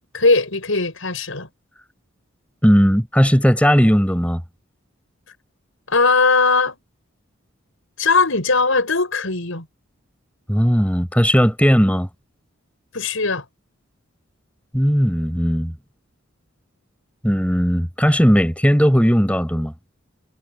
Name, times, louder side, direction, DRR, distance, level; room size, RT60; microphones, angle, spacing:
voice 1, 0.1-1.5 5.9-6.8 8.0-9.7 12.9-13.4, left 3 dB, 75° left, 5.8 m, -19 dB
voice 2, 2.6-4.4 10.5-12.1 14.7-15.7 17.2-19.7, equal, 5° left, 6.5 m, -17 dB
head